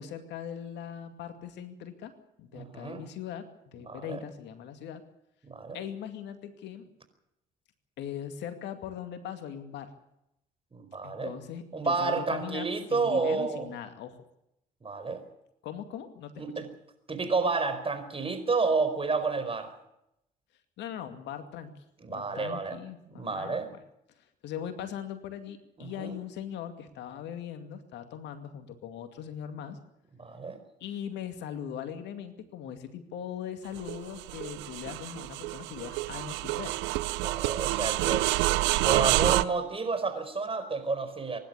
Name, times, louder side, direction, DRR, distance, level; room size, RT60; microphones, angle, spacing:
voice 1, 0.0-2.1 2.4-5.0 5.7-6.9 8.0-9.9 11.0-14.2 15.6-16.6 20.8-21.7 22.1-23.6 24.4-29.8 30.8-36.8, left 9 dB, 70° left, 8 dB, 2.3 m, -40 dB
voice 2, 2.5-3.0 3.9-4.2 5.4-5.8 10.7-11.3 11.7-13.7 14.8-15.2 16.4-16.7 17.1-19.8 22.0-22.8 23.1-23.7 25.8-26.2 30.2-30.6 37.2-38.3 38.8-41.4, right 4 dB, 30° right, 9 dB, 4.7 m, -30 dB
sound 1, 33.8-39.4, right 19 dB, 75° right, 0.7 m, -28 dB
24.5 x 11.5 x 9.9 m, 0.81 s
hypercardioid pair, 55°, 19 cm